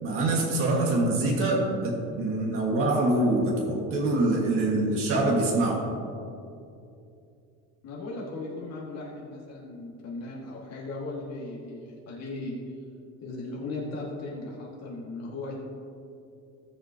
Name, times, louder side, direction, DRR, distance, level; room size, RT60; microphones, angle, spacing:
voice 1, 0.0-5.8, right 2 dB, 40° right, -2 dB, 1.8 m, -25 dB
voice 2, 7.8-12.7 13.2-15.6, left 2 dB, 45° left, -4 dB, 2.0 m, -37 dB
17.5 x 6.6 x 2.9 m, 2.6 s
cardioid pair, 155°, 35 cm